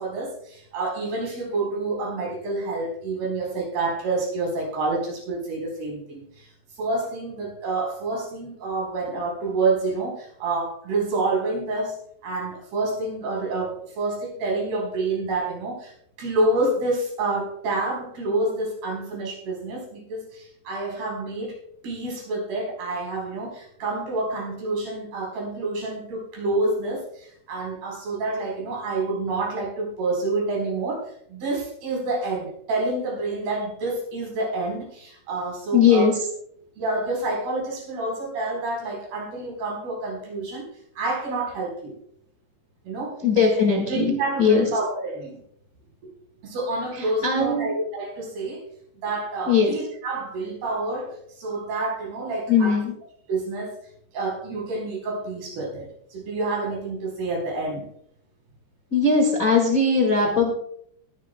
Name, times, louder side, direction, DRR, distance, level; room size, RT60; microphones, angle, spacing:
voice 1, 0.0-6.5 6.7-12.0 12.2-15.9 16.2-21.6 21.8-36.1 36.8-40.7 41.0-41.9 42.8-43.2 43.9-45.4 46.4-48.6 49.0-52.8 53.3-53.8 54.1-55.9 56.1-57.9, right 2 dB, 65° right, -2 dB, 6.1 m, -28 dB
voice 2, 35.7-36.3 43.2-44.7 46.9-47.7 49.5-49.7 52.5-52.9 58.9-60.5, left 4 dB, 85° left, 0 dB, 0.7 m, -20 dB
20.5 x 10.5 x 2.2 m, 0.69 s
omnidirectional pair, 4.9 m